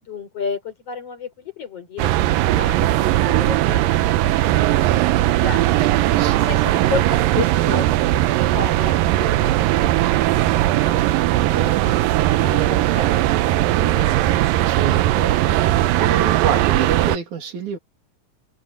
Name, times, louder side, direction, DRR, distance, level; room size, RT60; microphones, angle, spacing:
voice 1, 0.0-2.1 2.6-2.9 3.3-4.1 4.4-5.9 6.3-11.0 11.5-11.9 12.4-14.3, left 5 dB, 45° left, 5.2 m, -33 dB
sound 1, 2.0-17.2, right 15 dB, 85° right, 2.5 m, -18 dB
voice 2, 6.1-6.5 14.6-17.8, right 6 dB, 60° right, 4.1 m, -28 dB
omnidirectional pair, 4.0 m